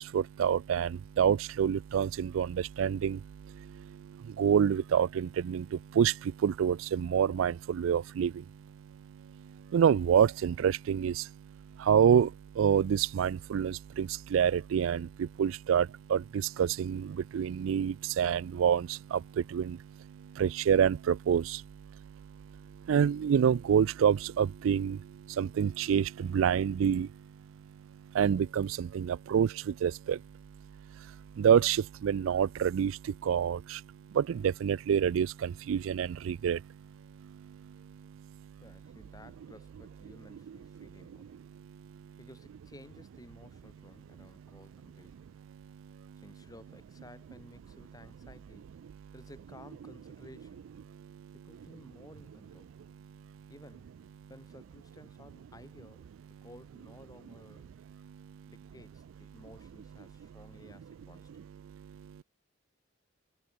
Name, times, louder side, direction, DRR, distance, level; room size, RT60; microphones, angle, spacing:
voice 1, 0.0-3.2 4.4-5.6 6.0-6.1 6.4-8.3 9.7-11.1 11.9-12.3 12.6-15.1 15.4-16.2 16.6-17.1 17.3-19.2 19.5-19.8 20.4-21.4 22.9-25.0 25.4-27.1 28.2-29.5 29.8-30.2 31.4-32.9 33.3-33.6 34.2-36.6, right 8 dB, 70° right, 0.3 m, -26 dB
voice 2, 38.6-41.3 42.2-45.3 46.2-48.8 49.1-50.6 51.3-52.7 53.5-53.9 54.3-57.7 58.4-61.4, left 1 dB, 20° left, 7.1 m, -55 dB
head